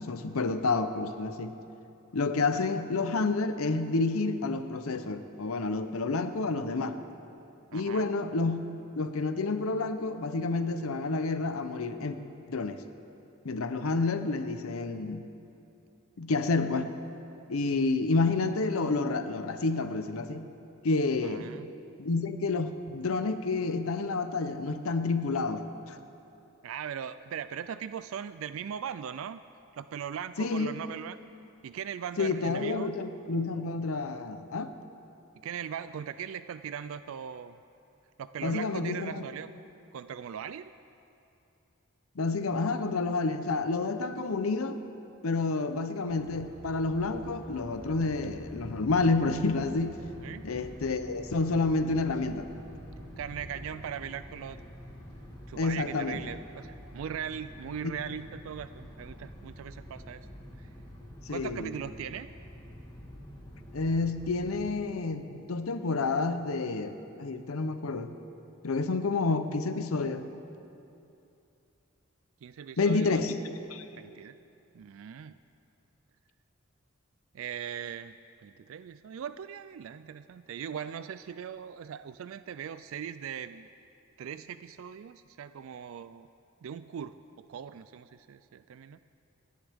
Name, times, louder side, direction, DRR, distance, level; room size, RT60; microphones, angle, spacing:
voice 1, 0.0-1.5 2.1-7.0 7.7-8.6 9.0-12.2 12.5-12.8 13.4-15.2 16.2-16.9 17.5-20.5 20.8-21.5 22.0-25.6 25.9-26.0 30.4-30.8 32.2-34.7 38.4-39.2 42.2-44.8 45.2-50.0 50.4-52.5 55.5-56.2 61.3-61.7 63.7-68.2 68.6-70.2 72.8-73.4 73.7-73.9, left 3 dB, 85° left, 9 dB, 0.7 m, -29 dB
voice 2, 7.7-8.1 21.2-21.7 26.6-29.4 29.7-31.2 31.6-32.9 35.4-37.6 38.2-39.5 39.9-40.7 50.2-50.5 53.2-54.6 55.5-60.2 60.6-60.7 61.3-62.3 72.4-73.4 74.0-74.4 74.7-75.4 77.3-78.1 78.4-83.7 84.2-86.3 86.6-89.0, right 8 dB, 75° right, 13 dB, 0.3 m, -39 dB
sound 1, 46.1-64.7, equal, 20° left, 1.7 m, -47 dB
27.5 x 10.5 x 3.5 m, 2.7 s
head